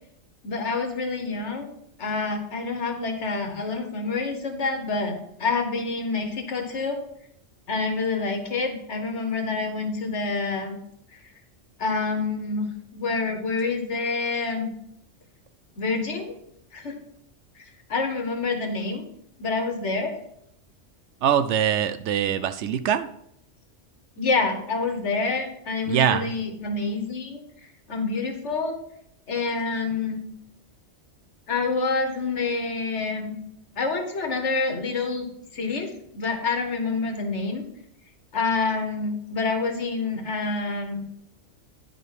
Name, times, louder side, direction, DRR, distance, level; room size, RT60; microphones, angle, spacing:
voice 1, 0.4-1.7 2.0-7.0 7.7-10.8 11.8-14.7 15.8-16.3 16.7-17.0 17.6-17.7 17.9-19.0 19.4-20.2 24.2-27.4 27.9-28.8 29.3-30.2 31.5-33.3 33.8-37.6 38.3-41.0, left 4 dB, 70° left, 5 dB, 1.6 m, -27 dB
voice 2, 21.2-23.1 25.9-26.3, right 9 dB, 70° right, 12 dB, 0.8 m, -23 dB
10.0 x 5.0 x 4.7 m, 0.73 s
omnidirectional pair, 1.3 m